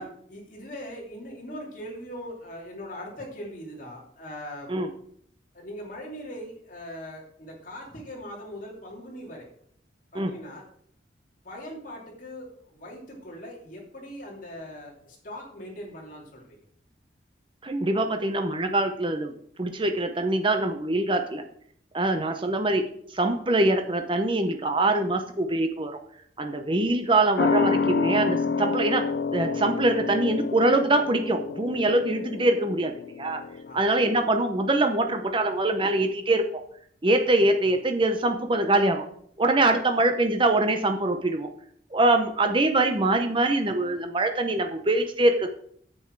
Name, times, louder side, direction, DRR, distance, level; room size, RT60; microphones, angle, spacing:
voice 1, 0.0-4.7 5.5-9.5 10.1-10.6 11.4-16.6 33.7-33.8, equal, 45° left, -1 dB, 2.9 m, -40 dB
voice 2, 17.6-19.3 19.6-21.4 21.9-22.8 23.1-26.0 26.4-33.4 33.7-36.4 37.0-39.0 39.4-41.5 41.9-45.5, right 2 dB, 25° right, 6 dB, 0.8 m, -24 dB
sound 1, 27.4-34.4 34.7-34.8, left 5 dB, 60° left, 0.4 m, -28 dB
9.4 x 8.0 x 4.6 m, 0.63 s
head